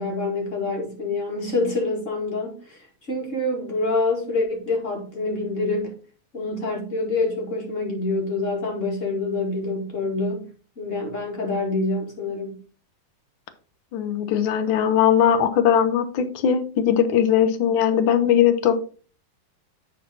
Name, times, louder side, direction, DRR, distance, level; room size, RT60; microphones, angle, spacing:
voice 1, 0.0-5.9 6.3-10.5 10.8-12.6, left 2 dB, 35° left, 0 dB, 2.4 m, -26 dB
voice 2, 13.9-18.7, left 9 dB, 70° left, 10 dB, 1.6 m, -19 dB
10.5 x 4.1 x 4.2 m, 0.39 s
omnidirectional pair, 2.3 m